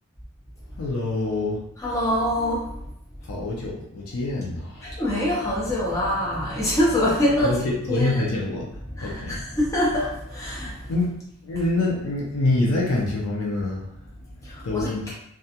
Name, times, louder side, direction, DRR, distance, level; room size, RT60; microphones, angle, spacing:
voice 1, 0.8-1.6 3.2-4.9 7.4-8.7 9.0-9.4 10.9-11.1 11.4-15.1, left 2 dB, 70° left, -3 dB, 0.4 m, -26 dB
voice 2, 1.8-2.9 3.2-3.4 4.8-8.3 8.8-11.0 11.6-11.7 14.4-15.1, left 1 dB, 15° left, -6 dB, 0.4 m, -25 dB
2.3 x 2.1 x 2.7 m, 0.76 s
head